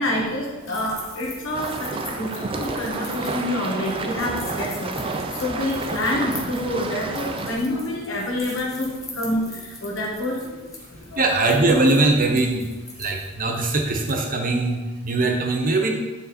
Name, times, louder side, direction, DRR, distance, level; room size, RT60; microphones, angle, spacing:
voice 1, 0.0-11.3, left 1 dB, 70° left, -3 dB, 1.5 m, -27 dB
sound 1, 0.6-14.2, left 2 dB, 15° left, 1.2 m, -42 dB
sound 2, 1.5-7.6, right 3 dB, 25° right, 0.5 m, -30 dB
voice 2, 11.2-12.7 13.0-15.9, right 2 dB, 40° right, 2 dB, 0.9 m, -21 dB
9.3 x 3.7 x 4.3 m, 1.2 s
head